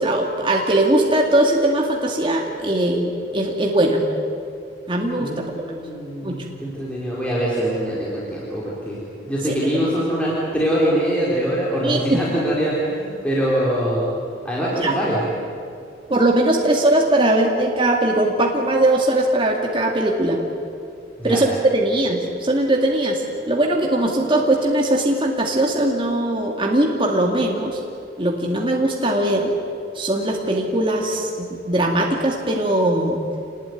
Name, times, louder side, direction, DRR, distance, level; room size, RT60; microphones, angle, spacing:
voice 1, 0.0-4.0 4.9-5.6 6.2-6.4 9.5-9.6 11.8-12.2 14.8-14.9 16.1-20.4 21.2-27.8 28.2-29.5 29.9-33.2, right 1 dB, 30° right, 0 dB, 2.2 m, -20 dB
voice 2, 5.2-9.0 9.2-14.1 14.4-15.2 21.2-21.5, equal, 5° left, -6 dB, 4.3 m, -23 dB
26.5 x 20.0 x 9.7 m, 2.5 s
head